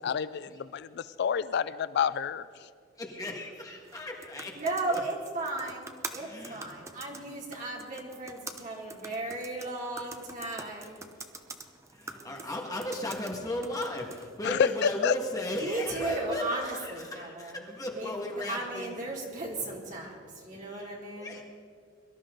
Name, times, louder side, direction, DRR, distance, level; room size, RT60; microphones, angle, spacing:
voice 1, 0.0-2.4 14.4-15.1, left 7 dB, 60° left, 16 dB, 0.4 m, -28 dB
voice 2, 3.0-4.6 4.9-5.0 6.1-6.7 7.1-7.3 11.9-19.0 20.5-21.4, left 1 dB, 20° left, 0 dB, 1.8 m, -36 dB
sound 1, 3.8-14.4, right 3 dB, 15° right, 0.8 m, -46 dB
voice 3, 4.5-11.0 12.1-12.9 15.6-21.4, right 2 dB, 40° right, -2 dB, 3.0 m, -36 dB
23.0 x 12.5 x 3.9 m, 2.1 s
head